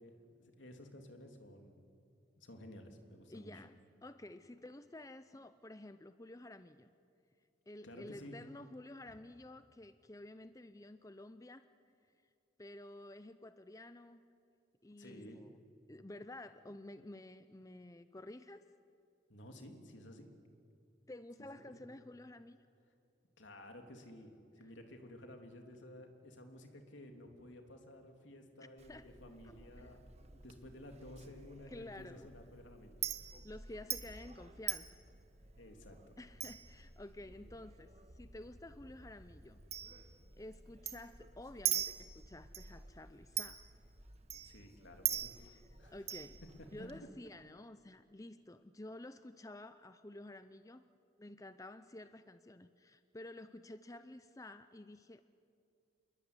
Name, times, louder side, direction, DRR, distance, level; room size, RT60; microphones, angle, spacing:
voice 1, 0.0-1.8 2.4-3.6 7.8-8.4 15.0-15.4 19.3-20.3 21.5-21.8 23.4-24.3 24.6-33.0 35.6-36.0 44.4-45.3 45.8-45.9 46.6-46.9, left 1 dB, 75° left, 4 dB, 3.2 m, -53 dB
voice 2, 3.3-6.9 7.7-11.7 12.6-14.2 14.8-15.5 15.9-18.6 21.1-22.6 28.6-29.2 29.4-30.0 31.7-32.3 33.4-34.9 36.2-39.6 40.4-43.6 45.4-45.5 45.9-46.4 46.7-50.8 51.2-55.2, left 1 dB, 15° left, 11 dB, 0.6 m, -51 dB
Chink clink, 28.8-47.0, right 10 dB, 35° right, 1.6 m, -44 dB
27.5 x 21.5 x 9.8 m, 2.4 s
head